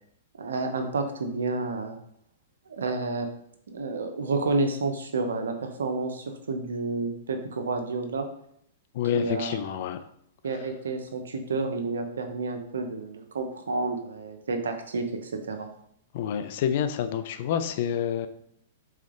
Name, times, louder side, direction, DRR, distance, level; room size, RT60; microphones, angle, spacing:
voice 1, 0.4-2.0 2.7-3.3 3.7-8.3 9.1-9.6 10.4-15.7, right 3 dB, 80° right, 5 dB, 0.7 m, -30 dB
voice 2, 8.9-10.0 16.1-18.3, left 9 dB, 55° left, 10 dB, 0.4 m, -28 dB
3.8 x 3.3 x 3.8 m, 0.70 s
hypercardioid pair, 120°, 0 cm